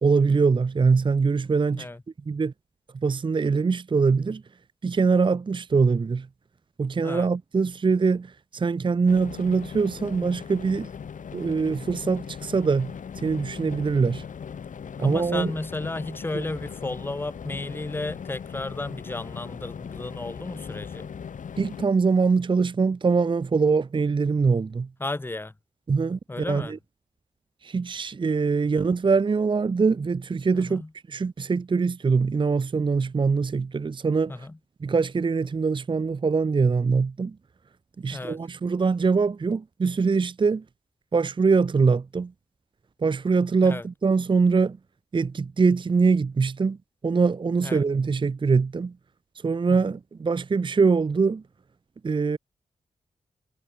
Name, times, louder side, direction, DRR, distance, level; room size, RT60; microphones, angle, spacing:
voice 1, 0.0-1.9 2.3-2.5 2.9-4.4 4.8-6.3 6.8-10.9 11.3-14.2 15.0-15.5 16.3-16.4 21.6-24.9 25.9-26.8 27.6-30.8 31.1-34.5 34.8-37.4 38.0-40.6 41.1-42.3 43.0-44.8 45.1-46.8 47.0-49.0 49.3-51.4 52.0-52.4, right 4 dB, 35° right, 0.7 m, -23 dB
sound 1, 9.1-21.9, left 7 dB, 75° left, 6.0 m, -39 dB
voice 2, 15.0-21.1 25.0-25.5 26.3-26.7 30.5-30.9 34.3-34.6 38.1-38.4 43.6-43.8 47.6-47.8 49.7-49.8, left 2 dB, 15° left, 0.9 m, -33 dB
cardioid pair, 65°, 13 cm